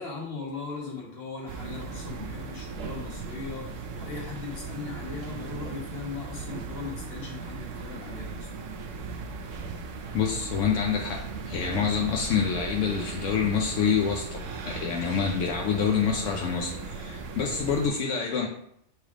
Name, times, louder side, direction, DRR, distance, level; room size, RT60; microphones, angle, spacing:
voice 1, 0.0-3.7 4.0-8.5, left 4 dB, 55° left, -3 dB, 1.8 m, -38 dB
sound 1, 1.5-17.9, right 4 dB, 85° right, 1.1 m, -37 dB
voice 2, 10.1-18.5, left 6 dB, 80° left, 1 dB, 1.1 m, -27 dB
8.1 x 3.4 x 3.7 m, 0.73 s
omnidirectional pair, 1.3 m